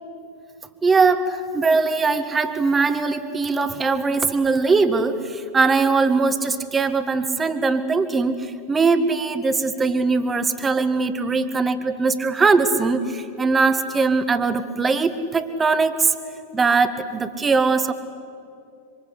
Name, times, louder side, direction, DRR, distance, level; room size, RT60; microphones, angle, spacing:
voice 1, 0.8-16.1 16.5-17.9, right 4 dB, 15° right, 10 dB, 1.8 m, -21 dB
26.5 x 26.0 x 8.1 m, 2.6 s
figure-of-eight pair, 90°, 0 cm